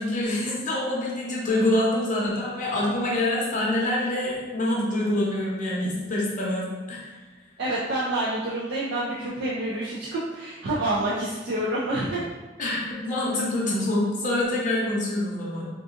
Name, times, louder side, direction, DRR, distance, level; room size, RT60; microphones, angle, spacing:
voice 1, 0.0-7.1 12.6-15.7, left 1 dB, 45° left, -4 dB, 0.7 m, -26 dB
voice 2, 7.6-12.2, right 1 dB, 65° right, -7 dB, 0.5 m, -28 dB
3.8 x 2.4 x 2.5 m, 1.3 s
head